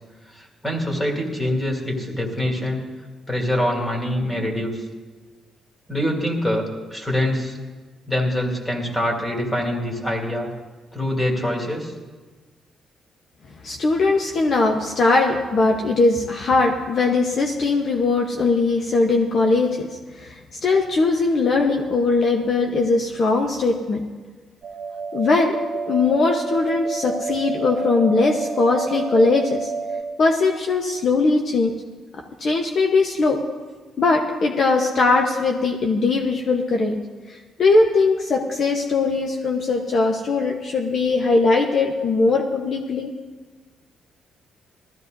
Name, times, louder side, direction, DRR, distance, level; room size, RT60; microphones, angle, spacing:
voice 1, 0.3-2.8 3.3-4.8 5.9-7.6 8.1-10.5 10.9-11.9, left 1 dB, 15° left, 1 dB, 2.8 m, -24 dB
voice 2, 13.6-19.9 20.2-24.0 25.1-25.6 25.9-29.7 30.2-31.7 32.4-33.4 34.0-37.0 37.6-43.1, left 3 dB, 55° left, 2 dB, 1.1 m, -20 dB
sound 1, 24.6-30.0, right 4 dB, 30° right, 2.0 m, -29 dB
19.0 x 14.0 x 2.7 m, 1.4 s
cardioid pair, 90°, 0 cm